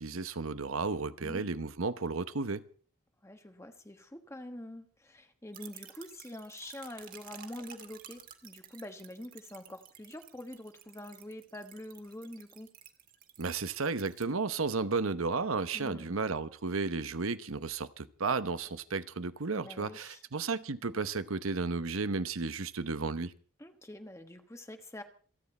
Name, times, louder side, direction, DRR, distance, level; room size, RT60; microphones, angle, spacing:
voice 1, 0.0-2.6 13.4-23.3, right 4 dB, 75° right, 1.0 m, -33 dB
voice 2, 1.2-1.5 3.2-12.7 15.7-16.2 19.5-20.2 23.6-25.0, left 1 dB, 15° left, 1.2 m, -46 dB
sound 1, 5.5-14.3, right 9 dB, 40° right, 2.0 m, -53 dB
27.5 x 9.7 x 4.3 m
head